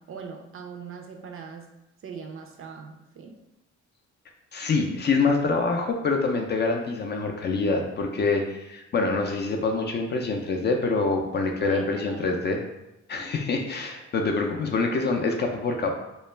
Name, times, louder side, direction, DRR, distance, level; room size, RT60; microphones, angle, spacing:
voice 1, 0.0-1.7 2.0-3.4 11.6-12.4, right 5 dB, 45° right, 3 dB, 0.4 m, -41 dB
voice 2, 4.5-12.6 13.1-15.9, left 3 dB, 35° left, 2 dB, 0.4 m, -25 dB
2.3 x 2.1 x 3.1 m, 0.95 s
cardioid pair, 90°, 30 cm